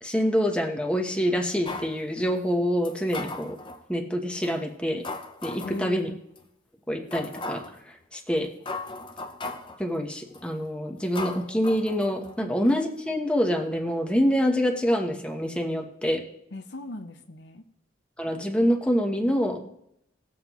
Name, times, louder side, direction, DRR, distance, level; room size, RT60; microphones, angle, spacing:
voice 1, 0.0-3.6 3.9-5.0 5.4-6.1 6.9-7.6 7.9-8.5 9.8-16.2 18.2-19.6, equal, 5° left, 2 dB, 1.1 m, -26 dB
sound 1, 1.6-2.0 2.8-3.8 4.4-4.5 5.0-5.8 6.4-6.5 7.1-7.8 8.4-8.5 8.7-9.8 10.3-10.6 11.1-12.4 12.7-12.8, left 2 dB, 25° left, 0.8 m, -37 dB
voice 2, 5.6-6.2 12.4-12.5 16.5-17.6, left 2 dB, 75° left, 7 dB, 0.9 m, -38 dB
19.0 x 7.5 x 3.0 m, 0.76 s
head